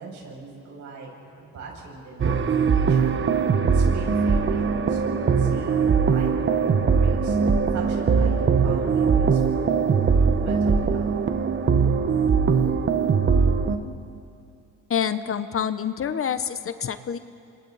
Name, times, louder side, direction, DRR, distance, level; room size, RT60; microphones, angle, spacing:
voice 1, 0.0-2.4 2.7-3.2 3.7-7.4 7.7-9.9 10.4-11.0, right 3 dB, 70° right, -2 dB, 7.4 m, -41 dB
sound 1, 2.2-13.8, right 5 dB, 40° right, 1.2 m, -21 dB
voice 2, 14.9-17.2, left 8 dB, 45° left, 12 dB, 0.9 m, -27 dB
28.5 x 25.0 x 4.1 m, 2.5 s
cardioid pair, 90°, 30 cm